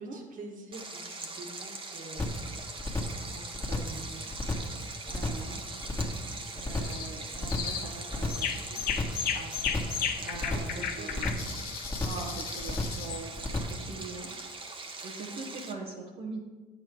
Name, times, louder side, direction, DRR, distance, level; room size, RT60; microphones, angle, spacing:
voice 1, 0.0-2.5 3.2-4.3 9.3-9.8 10.3-11.3, right 2 dB, 55° right, 1 dB, 2.0 m, -46 dB
Stream, 0.7-15.7, right 3 dB, 35° right, 1.3 m, -42 dB
sound 1, 2.2-2.5 2.8-3.2 3.5-4.0 4.3-4.8 5.1-5.5 5.8-6.3 6.6-7.0 7.3-7.8 8.1-8.5 8.8-9.3 9.6-10.0 10.3-10.8 11.1-11.5 11.8-12.3 12.6-13.1 13.4-13.8, left 2 dB, 15° left, 1.8 m, -32 dB
voice 2, 5.1-6.2 6.5-8.8 10.2-11.5 12.0-14.3 15.0-16.4, right 3 dB, 75° right, -3 dB, 1.4 m, -42 dB
sound 2, 6.8-7.1 7.5-7.9 8.3-13.2, left 8 dB, 70° left, 0.9 m, -34 dB
9.2 x 6.7 x 4.6 m, 1.3 s
supercardioid pair, 75°, 16 cm